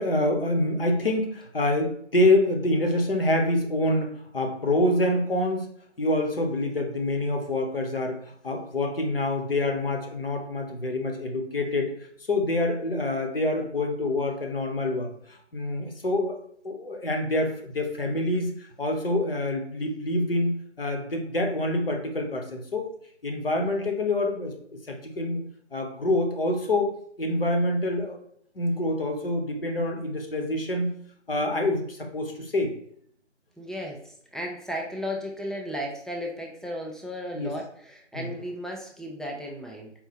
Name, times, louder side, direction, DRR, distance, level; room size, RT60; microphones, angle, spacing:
voice 1, 0.0-5.7 6.0-16.4 16.6-22.9 23.2-24.5 24.9-25.4 25.7-28.2 28.5-30.9 31.3-32.7 37.3-37.6 38.1-38.3, left 1 dB, 50° left, 3 dB, 0.8 m, -26 dB
voice 2, 33.6-34.0 34.3-39.9, equal, ahead, -1 dB, 0.3 m, -34 dB
4.3 x 2.1 x 4.2 m, 0.65 s
figure-of-eight pair, 170°, 36 cm